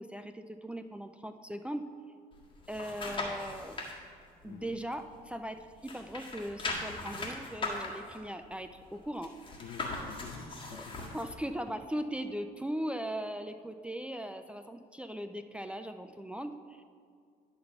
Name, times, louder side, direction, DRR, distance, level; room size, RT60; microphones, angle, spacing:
voice 1, 0.0-1.9 2.7-3.8 4.4-9.3 10.7-10.9 11.1-16.8, equal, 5° right, 7 dB, 0.3 m, -39 dB
sound 1, 2.3-3.9 4.4-5.5 5.8-11.3 11.8-11.9, left 3 dB, 30° left, 1.8 m, -39 dB
voice 2, 4.4-4.7 9.6-11.1, left 6 dB, 55° left, 3 dB, 0.9 m, -47 dB
11.0 x 4.0 x 6.6 m, 2.2 s
cardioid pair, 110°, 17 cm